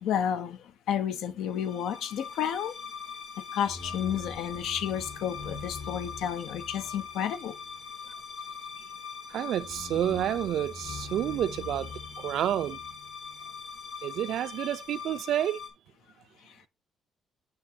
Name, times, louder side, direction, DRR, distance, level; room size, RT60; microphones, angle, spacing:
voice 1, 0.0-2.7 3.5-7.6 16.5-16.7, left 9 dB, 85° left, 0.6 m, -31 dB
sound 1, 1.5-15.7, left 5 dB, 60° left, 1.4 m, -41 dB
voice 2, 9.3-12.8 14.0-15.6, right 11 dB, 70° right, 0.4 m, -29 dB
7.1 x 5.7 x 2.7 m
cardioid pair, 150°, 0 cm